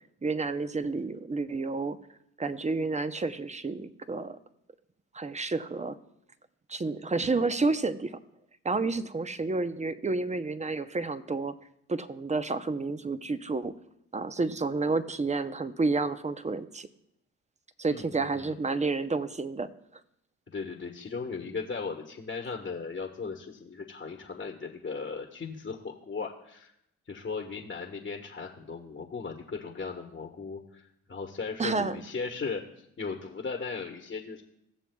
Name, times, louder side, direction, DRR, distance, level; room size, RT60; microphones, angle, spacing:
voice 1, 0.2-2.0 2.4-4.4 5.1-6.0 6.7-8.2 8.6-11.5 11.9-13.7 14.1-16.9 17.8-19.7 31.6-32.1, right 3 dB, 20° right, 11 dB, 0.7 m, -30 dB
voice 2, 17.9-18.6 20.5-26.7 27.1-32.6 33.0-34.4, left 4 dB, 35° left, 1 dB, 1.3 m, -37 dB
17.0 x 7.0 x 2.3 m, 0.78 s
hypercardioid pair, 50°, 35 cm